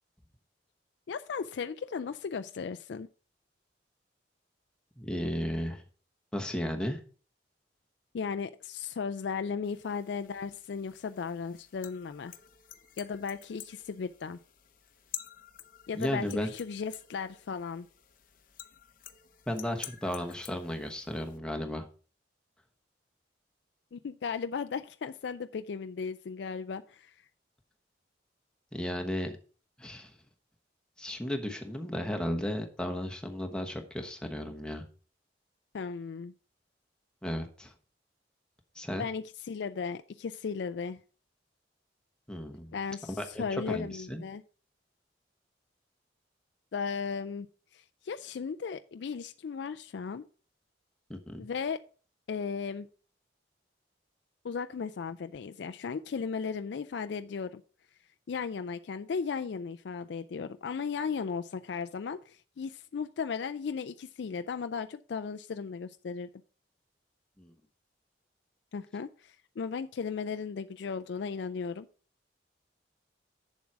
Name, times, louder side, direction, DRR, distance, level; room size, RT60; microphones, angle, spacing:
voice 1, 1.1-3.1 8.1-12.3 13.0-14.4 15.9-17.9 23.9-27.1 35.7-36.3 39.0-41.0 42.7-44.4 46.7-47.5 47.7-50.3 51.4-51.8 52.3-52.9 54.4-57.6 58.3-66.3 68.7-71.9, left 5 dB, 65° left, 10 dB, 0.4 m, -36 dB
voice 2, 5.0-5.8 6.3-7.0 15.9-16.5 19.5-21.8 28.7-29.3 29.8-30.1 31.0-34.8 37.2-37.7 38.7-39.1 42.3-42.8 43.2-44.2 51.1-51.5 67.4-67.5, equal, 5° left, 4 dB, 1.1 m, -34 dB
sound 1, 9.6-21.4, left 11 dB, 45° left, 0.7 m, -50 dB
7.3 x 7.2 x 4.6 m, 0.39 s
head